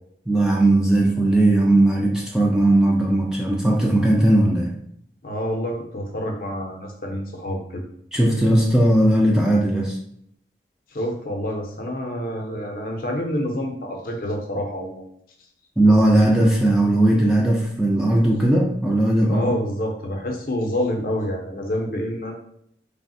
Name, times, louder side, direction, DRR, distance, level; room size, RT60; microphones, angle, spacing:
voice 1, 0.3-4.7 8.1-10.0 15.8-19.5, right 1 dB, 5° right, -2 dB, 0.3 m, -18 dB
voice 2, 5.2-7.8 10.9-15.0 19.3-22.3, equal, 50° left, 2 dB, 0.5 m, -27 dB
3.3 x 2.0 x 2.5 m, 0.69 s
head